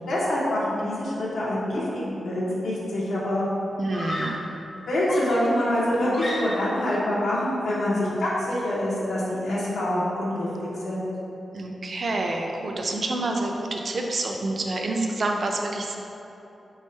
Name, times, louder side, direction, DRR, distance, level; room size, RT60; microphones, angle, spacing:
voice 1, 0.1-3.5 4.9-11.1, left 1 dB, 85° left, -7 dB, 0.9 m, -25 dB
Screaming, 2.7-2.8 3.9-4.5 5.1-6.8, equal, 35° left, 0.6 m, -34 dB
voice 2, 3.8-4.4 11.5-16.0, right 2 dB, 45° right, 1 dB, 0.4 m, -28 dB
3.5 x 3.3 x 4.3 m, 3.0 s
wide cardioid pair, 155°, 0 cm